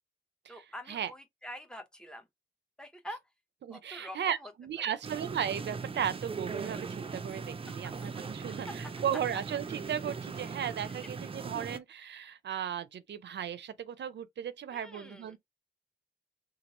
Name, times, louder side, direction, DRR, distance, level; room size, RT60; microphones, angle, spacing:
voice 1, 0.5-2.2 2.8-3.2 3.7-4.5 4.8-4.9 10.9-11.0 14.7-15.4, equal, 5° left, 0.7 m, -46 dB
voice 2, 3.6-15.4, right 9 dB, 80° right, 0.5 m, -36 dB
sound 1, 5.0-11.8, right 5 dB, 30° right, 0.4 m, -39 dB
3.0 x 2.4 x 4.0 m
wide cardioid pair, 125°, 18 cm